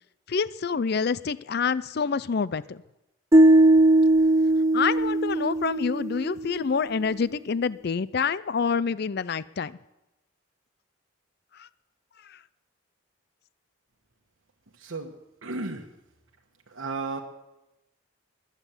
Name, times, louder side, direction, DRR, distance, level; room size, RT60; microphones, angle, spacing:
voice 1, 0.3-2.8 4.7-9.8 11.6-11.7 12.3-12.4, left 5 dB, 50° left, 18 dB, 0.4 m, -27 dB
sound 1, 3.3-6.5, right 1 dB, 15° right, 0.5 m, -19 dB
voice 2, 14.8-15.1 15.4-15.9 16.7-17.2, right 3 dB, 75° right, 1 dB, 1.3 m, -33 dB
22.0 x 8.2 x 7.2 m, 0.95 s
head